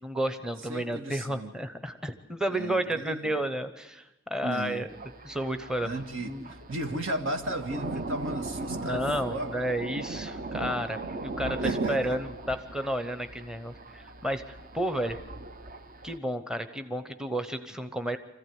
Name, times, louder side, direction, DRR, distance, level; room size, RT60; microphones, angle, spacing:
voice 1, 0.0-4.9 5.2-5.9 6.2-6.5 8.7-15.2 16.0-18.2, right 1 dB, 5° right, 9 dB, 0.9 m, -32 dB
voice 2, 0.7-1.5 2.5-3.4 4.4-4.9 5.8-9.5 11.6-12.2, right 1 dB, 75° right, 6 dB, 2.0 m, -35 dB
Thunder, 4.9-16.2, right 2 dB, 45° right, 0.8 m, -38 dB
26.0 x 15.0 x 9.4 m, 1.0 s
head